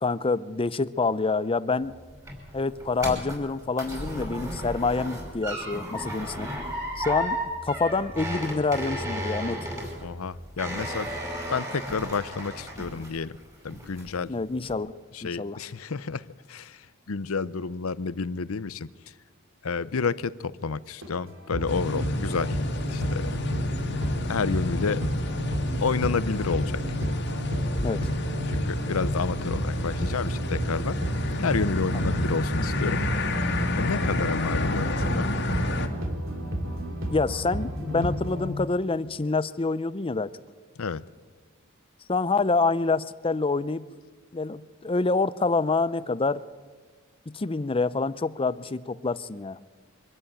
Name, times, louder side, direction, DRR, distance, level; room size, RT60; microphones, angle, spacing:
voice 1, 0.0-2.0 2.5-6.5 7.0-7.4 7.7-9.6 14.3-14.9 15.2-15.6 27.8-28.0 37.1-40.3 42.1-43.9 44.3-46.4 47.3-49.6, left 3 dB, 25° left, 16 dB, 0.6 m, -27 dB
sound 1, 1.8-13.4 13.7-14.2 14.6-14.7, equal, 15° right, 5.3 m, -34 dB
voice 2, 10.0-11.1 11.5-13.3 13.6-14.3 15.1-18.9 19.6-22.6 22.9-23.3 24.2-25.0 25.8-27.0 28.4-31.0 31.4-33.0 33.7-35.3 40.8-41.0, left 5 dB, 80° left, 17 dB, 0.7 m, -30 dB
sound 2, 21.0-38.5, equal, 65° right, 3.2 m, -31 dB
sound 3, 21.7-35.9, left 1 dB, 55° left, 2.1 m, -30 dB
24.5 x 12.5 x 9.2 m, 1.4 s
head